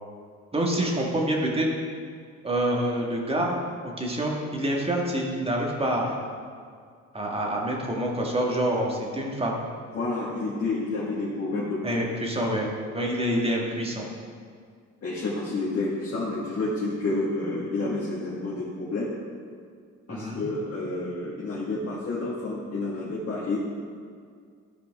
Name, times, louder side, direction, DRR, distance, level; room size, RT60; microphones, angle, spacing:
voice 1, 0.5-1.7 2.4-3.6 3.8-6.2 7.1-9.6 11.8-12.7 12.9-14.0 20.1-20.4, right 1 dB, 20° right, -1 dB, 1.7 m, -27 dB
voice 2, 9.9-12.0 12.4-12.7 15.0-19.1 20.1-23.6, left 2 dB, 50° left, -7 dB, 1.7 m, -29 dB
13.5 x 5.0 x 3.5 m, 2.1 s
cardioid pair, 90°, 30 cm